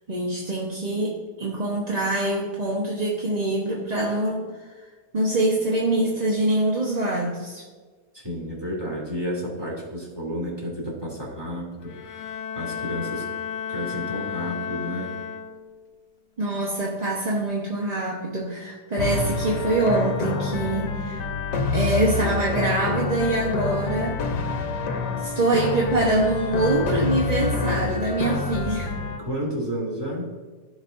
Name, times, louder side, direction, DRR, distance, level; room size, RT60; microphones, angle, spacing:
voice 1, 0.1-4.5 5.1-7.6 16.4-21.3 21.7-24.2 25.2-28.9, right 2 dB, 30° right, -3 dB, 0.9 m, -24 dB
voice 2, 8.1-13.2 13.7-15.1 29.2-30.2, equal, 15° right, -4 dB, 2.7 m, -31 dB
Bowed string instrument, 11.8-15.9, left 7 dB, 65° left, 0.8 m, -33 dB
sound 1, 19.0-29.2, left 4 dB, 80° left, 1.4 m, -27 dB
15.5 x 5.2 x 2.6 m, 1.4 s
omnidirectional pair, 1.8 m